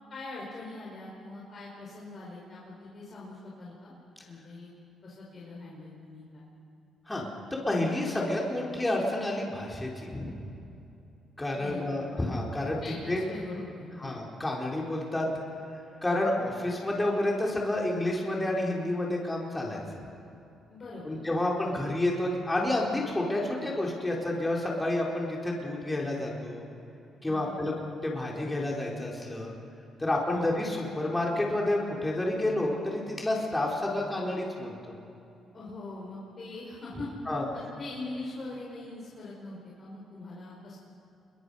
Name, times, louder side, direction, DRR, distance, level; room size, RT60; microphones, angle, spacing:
voice 1, 0.0-3.9 4.3-4.7 5.0-6.4 11.5-11.9 12.8-14.2 20.7-21.2 27.2-27.5 30.3-30.5 35.5-37.1 37.5-40.8, left 2 dB, 45° left, -5 dB, 5.2 m, -42 dB
voice 2, 7.7-10.3 11.4-12.8 13.1-13.2 14.0-15.3 16.0-20.0 21.0-26.6 27.2-27.7 28.0-29.5 30.0-34.9 37.3-37.5, left 1 dB, 15° left, -2 dB, 4.1 m, -29 dB
28.0 x 23.0 x 5.5 m, 2.8 s
cardioid pair, 90°, 0 cm